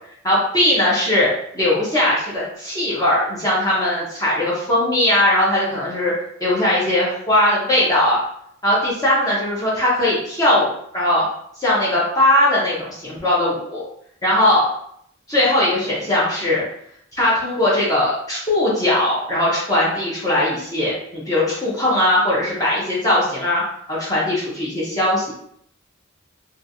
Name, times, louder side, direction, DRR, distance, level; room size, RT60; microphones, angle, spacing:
voice 1, 0.2-1.3 1.5-6.1 6.4-8.2 8.6-11.2 11.6-13.8 14.2-14.7 15.3-16.6 17.2-23.6 23.9-25.3, left 1 dB, 20° left, -7 dB, 0.7 m, -19 dB
3.0 x 2.3 x 2.6 m, 0.69 s
head